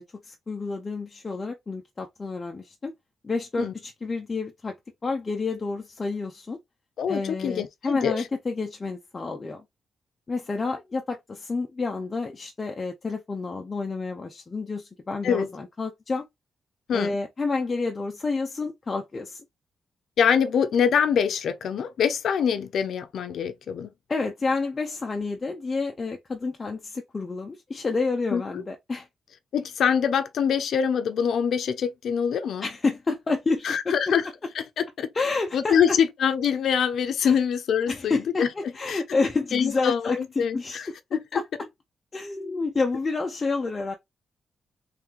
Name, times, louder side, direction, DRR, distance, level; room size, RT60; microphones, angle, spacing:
voice 1, 0.0-2.9 3.2-4.7 5.0-6.6 7.1-9.6 10.3-16.3 16.9-19.4 24.1-29.1 32.6-34.1 35.1-36.0 37.2-37.4 37.9-40.8 41.3-41.4 42.1-44.0, left 3 dB, 25° left, 0.5 m, -29 dB
voice 2, 7.0-8.2 15.2-15.5 16.9-17.1 20.2-23.9 28.3-28.4 29.5-32.6 33.6-34.2 34.6-35.1 35.5-38.5 38.9-39.0 39.5-40.9 41.1-41.2, left 7 dB, 70° left, 0.6 m, -24 dB
3.2 x 3.0 x 3.6 m
wide cardioid pair, 170°, 0 cm